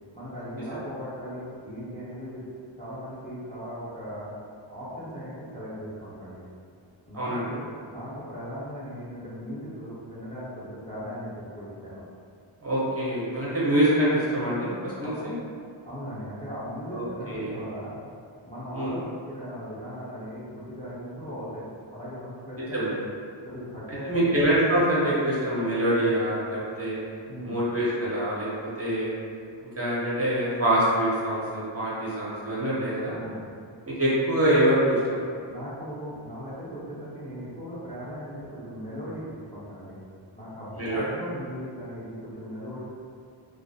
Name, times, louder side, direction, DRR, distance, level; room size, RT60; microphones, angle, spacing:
voice 1, 0.1-2.4 2.8-4.3 4.7-6.4 7.1-12.0 15.0-15.1 15.8-18.0 18.4-21.7 21.9-23.0 23.4-24.3 27.3-27.6 33.1-33.5 35.5-40.0 40.3-42.8, equal, 15° left, -11 dB, 0.5 m, -38 dB
voice 2, 7.1-7.5 12.6-15.3 16.9-17.6 18.7-19.0 22.6-23.0 24.1-27.0 27.4-28.5 28.8-29.1 29.6-33.1 33.9-35.2 40.7-41.0, right 1 dB, 30° right, -8 dB, 0.5 m, -25 dB
2.3 x 2.0 x 2.6 m, 2.3 s
wide cardioid pair, 130°, 47 cm